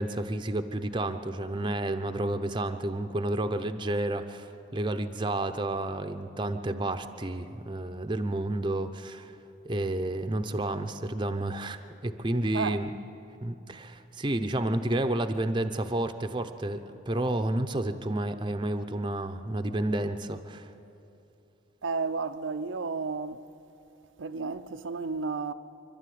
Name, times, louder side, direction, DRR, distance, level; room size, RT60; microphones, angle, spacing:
voice 1, 0.0-9.3 9.6-12.9 13.4-20.7, right 1 dB, 25° right, 0.7 m, -30 dB
voice 2, 21.8-23.4 24.2-25.5, right 4 dB, 85° right, 0.7 m, -32 dB
25.5 x 12.0 x 9.4 m
head